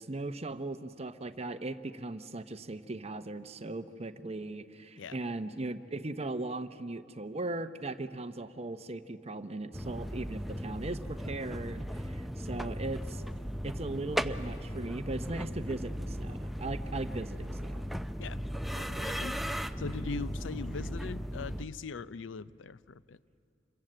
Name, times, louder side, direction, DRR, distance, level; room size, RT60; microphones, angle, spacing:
voice 1, 0.0-13.2 13.6-17.9, right 2 dB, 35° right, 10 dB, 0.8 m, -38 dB
sound 1, 9.7-21.7, equal, ahead, 0.5 m, -37 dB
voice 2, 18.7-19.4 19.8-23.2, left 5 dB, 75° left, 17 dB, 0.5 m, -41 dB
27.5 x 22.5 x 7.8 m, 2.5 s
head